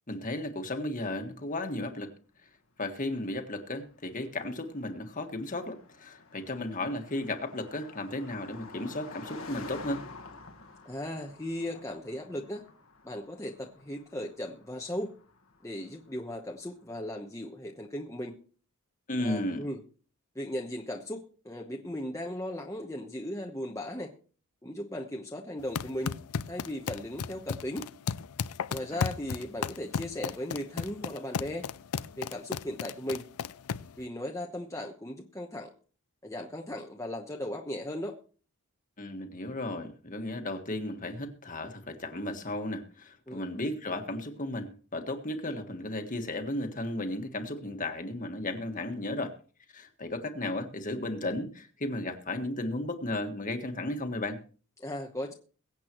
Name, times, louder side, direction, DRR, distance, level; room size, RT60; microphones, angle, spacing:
voice 1, 0.1-2.1 2.8-10.0 19.1-19.6 28.9-29.0 39.0-49.3 49.7-54.4, left 1 dB, 35° left, 6 dB, 1.6 m, -34 dB
Car passing by, 3.0-16.7, left 3 dB, 65° left, 1.4 m, -50 dB
voice 2, 10.8-12.6 13.0-15.1 15.6-18.4 19.2-19.8 20.3-24.1 24.6-26.2 26.5-27.9 28.7-31.7 32.2-33.3 34.0-35.7 36.2-38.2 43.3-43.4 54.8-55.3, left 1 dB, 15° left, 0 dB, 1.0 m, -37 dB
sound 1, 25.6-34.0, left 6 dB, 85° left, 0.5 m, -35 dB
22.5 x 8.3 x 3.1 m, 0.40 s
head